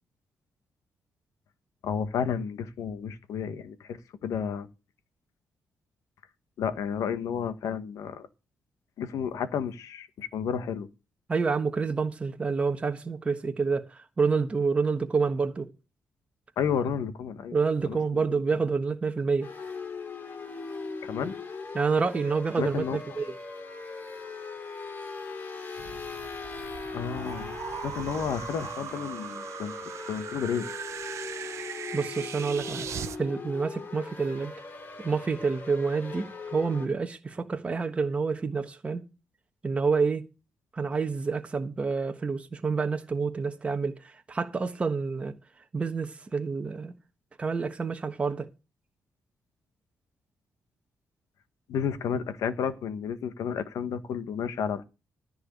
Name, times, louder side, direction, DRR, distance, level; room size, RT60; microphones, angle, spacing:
voice 1, 1.8-4.7 6.6-8.3 9.0-10.9 16.6-17.6 17.9-18.4 21.0-21.4 22.6-23.0 26.9-27.5 27.8-29.7 30.1-30.7 51.7-54.8, left 7 dB, 85° left, 1.5 m, -31 dB
voice 2, 11.3-15.7 17.5-19.5 21.7-23.4 31.9-32.9 33.2-34.5 35.0-39.0 39.6-40.2 40.7-45.3 45.7-46.9 47.4-48.5, right 4 dB, 20° right, 1.2 m, -28 dB
sound 1, 19.4-36.9, left 4 dB, 35° left, 2.7 m, -40 dB
sound 2, 25.8-33.2, right 8 dB, 60° right, 0.9 m, -39 dB
13.5 x 4.7 x 8.1 m
wide cardioid pair, 165°, 6 cm